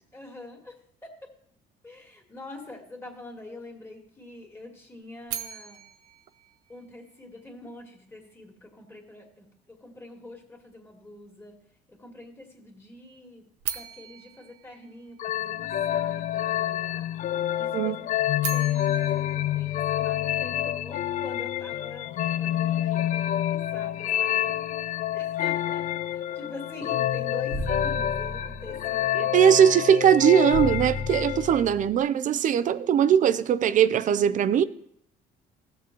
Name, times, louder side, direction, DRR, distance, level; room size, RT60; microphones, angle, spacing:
voice 1, 0.1-0.8 1.0-1.3 1.8-5.8 6.7-11.6 11.9-13.5 13.7-17.1 17.6-18.0 18.5-22.1 22.4-29.9, left 2 dB, 15° left, 2.3 m, -45 dB
sound 1, 5.3-7.4 13.6-15.8 18.1-20.6, right 11 dB, 90° right, 0.8 m, -39 dB
sound 2, 15.2-31.6, left 12 dB, 50° left, 0.4 m, -28 dB
sound 3, 27.5-28.9 30.5-31.9, left 2 dB, 85° left, 2.2 m, -33 dB
voice 2, 29.2-34.6, right 9 dB, 50° right, 0.5 m, -20 dB
15.5 x 6.8 x 3.0 m
cardioid pair, 110°, 17 cm